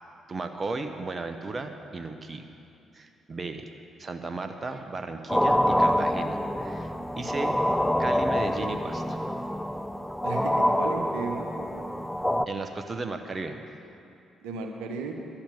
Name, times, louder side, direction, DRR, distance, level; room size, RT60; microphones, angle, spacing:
voice 1, 0.3-2.4 2.9-3.7 4.0-7.6 8.0-9.2 12.5-13.6, right 3 dB, 35° right, 6 dB, 0.9 m, -35 dB
sound 1, 5.3-12.5, left 1 dB, 5° left, 0.6 m, -26 dB
voice 2, 10.2-11.9 14.4-15.2, right 5 dB, 75° right, 3 dB, 1.0 m, -35 dB
12.0 x 7.2 x 9.3 m, 2.6 s
hypercardioid pair, 45°, 0 cm